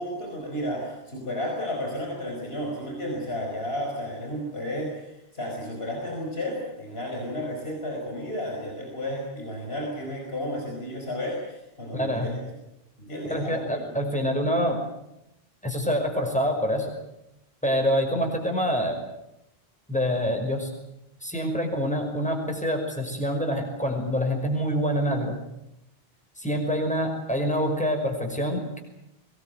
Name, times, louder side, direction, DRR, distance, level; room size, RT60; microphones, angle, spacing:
voice 1, 0.0-12.3 13.0-13.8, equal, 75° left, 0 dB, 5.4 m, -32 dB
voice 2, 11.9-12.3 13.3-14.8 15.6-16.9 17.6-19.0 19.9-20.7 21.2-25.3 26.4-28.8, equal, 5° left, 3 dB, 5.6 m, -26 dB
23.0 x 20.5 x 9.3 m, 0.85 s
omnidirectional pair, 1.0 m